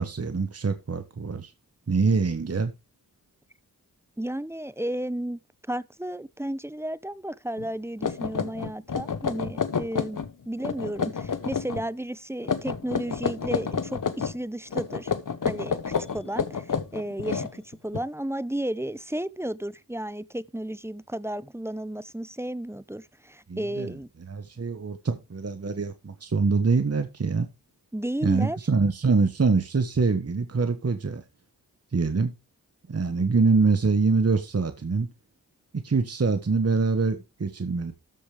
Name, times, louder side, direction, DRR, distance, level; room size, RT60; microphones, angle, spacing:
voice 1, 0.0-1.5 1.9-2.7 23.5-24.0 24.3-27.5 28.2-31.2 31.9-32.3 32.9-35.1 35.7-37.9, right 4 dB, 45° right, 1.3 m, -24 dB
voice 2, 4.2-5.4 5.7-15.1 15.4-24.1 27.9-28.6, right 1 dB, 5° right, 0.7 m, -33 dB
sound 1, 7.6-7.7 8.0-10.3 10.6-11.8 12.4-14.3 14.7-18.0, left 6 dB, 60° left, 1.2 m, -29 dB
14.0 x 5.2 x 5.0 m
cardioid pair, 50°, 35 cm